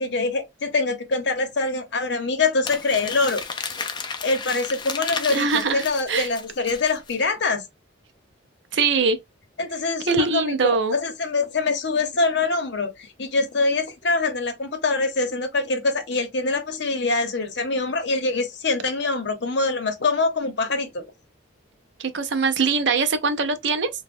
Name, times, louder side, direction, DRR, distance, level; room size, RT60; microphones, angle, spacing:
voice 1, 0.0-3.4 4.2-7.6 9.6-21.0, left 3 dB, 55° left, 0.7 m, -24 dB
Crumpling crinkling, 2.6-7.2, left 5 dB, 20° left, 0.3 m, -33 dB
voice 2, 5.3-6.3 8.7-9.2 10.1-10.9 22.0-23.9, right 4 dB, 60° right, 0.5 m, -22 dB
2.9 x 2.1 x 3.5 m
head